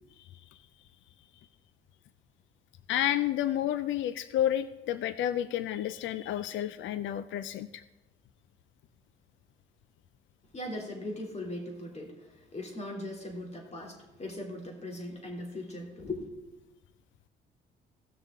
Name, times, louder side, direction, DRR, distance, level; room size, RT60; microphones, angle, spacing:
voice 1, 2.9-7.8, left 11 dB, 70° left, 13 dB, 0.5 m, -30 dB
voice 2, 10.5-16.3, left 1 dB, 35° left, 1 dB, 3.0 m, -39 dB
17.0 x 6.5 x 3.7 m, 1.0 s
cardioid pair, 90°, 20 cm